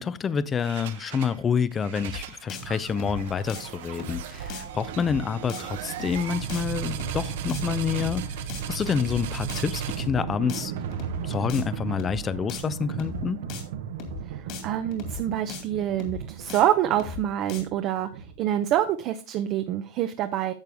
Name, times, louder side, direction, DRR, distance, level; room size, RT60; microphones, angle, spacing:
voice 1, 0.0-8.4 8.7-10.7 11.2-13.4, left 6 dB, 20° left, 0.5 m, -28 dB
sound 1, 0.6-1.4 1.7-18.7, right 8 dB, 75° right, 1.2 m, -35 dB
sound 2, 2.0-2.2 2.5-2.6 2.9-3.2 3.5-3.6 4.0-4.2 4.5-4.6 4.9-5.2 5.5-5.6 6.0-6.2 6.5-6.6 6.9-7.2 7.5-7.6 8.0-8.2 8.5-8.6 8.9-9.2 9.5-9.6 10.0-10.2 10.5-10.6 10.9-11.2 11.5-11.6 12.0-12.2 12.5-12.6 12.9-13.2 13.5-13.6 14.0-14.2 14.5-14.6 14.9-15.2 15.5-15.6 16.0-16.2 16.5-16.6 16.9-17.2 17.5-17.6, left 5 dB, 50° left, 2.5 m, -37 dB
voice 2, 14.6-20.5, right 11 dB, 45° right, 0.7 m, -26 dB
10.5 x 6.8 x 3.5 m
supercardioid pair, 130°, 0 cm